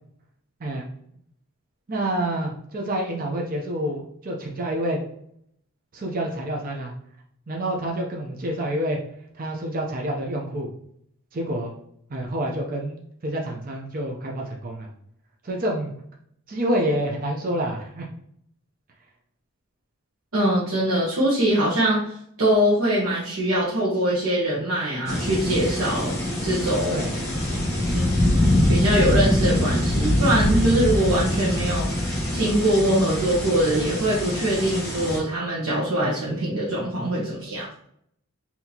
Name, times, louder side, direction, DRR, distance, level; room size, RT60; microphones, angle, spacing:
voice 1, 1.9-5.0 5.9-6.9 7.5-9.0 9.3-10.7 11.3-11.7 12.1-14.9 15.4-15.9 16.5-18.1 26.9-27.1 27.6-28.0, right 1 dB, 40° right, 0 dB, 0.6 m, -28 dB
voice 2, 20.3-22.1 22.4-27.0 27.9-28.3 28.7-37.7, right 1 dB, 70° right, -7 dB, 1.0 m, -23 dB
sound 1, 25.1-35.2, left 1 dB, 15° left, 1.3 m, -24 dB
4.0 x 2.8 x 2.8 m, 0.70 s
head